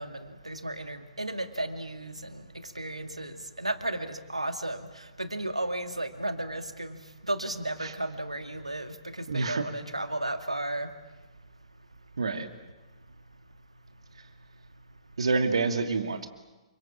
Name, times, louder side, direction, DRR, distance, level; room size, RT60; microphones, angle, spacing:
voice 1, 0.0-2.4 2.8-4.8 5.2-7.0 7.2-10.9, right 1 dB, 85° right, 8 dB, 2.2 m, -34 dB
voice 2, 9.3-9.6 12.2-12.5 15.2-16.3, right 4 dB, 65° right, 7 dB, 2.6 m, -27 dB
28.5 x 25.5 x 7.5 m, 1.2 s
figure-of-eight pair, 120°, 3 cm